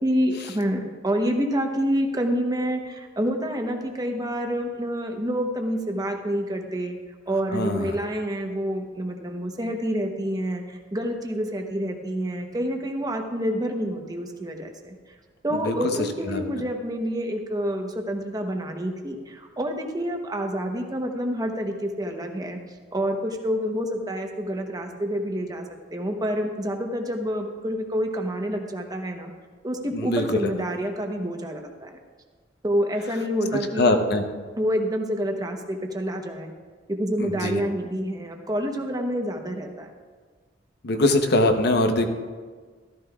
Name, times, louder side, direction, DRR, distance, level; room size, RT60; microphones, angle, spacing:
voice 1, 0.0-7.0 7.3-15.0 15.4-22.6 22.9-25.6 25.9-29.3 29.6-32.0 32.6-34.0 34.6-36.5 36.9-39.9, equal, 20° right, 3 dB, 0.9 m, -28 dB
voice 2, 7.5-8.0 15.5-15.9 16.2-16.4 29.9-30.5 33.8-34.2 37.2-37.6 40.8-42.1, left 1 dB, 60° left, 5 dB, 0.9 m, -22 dB
13.5 x 13.5 x 2.4 m, 1.5 s
head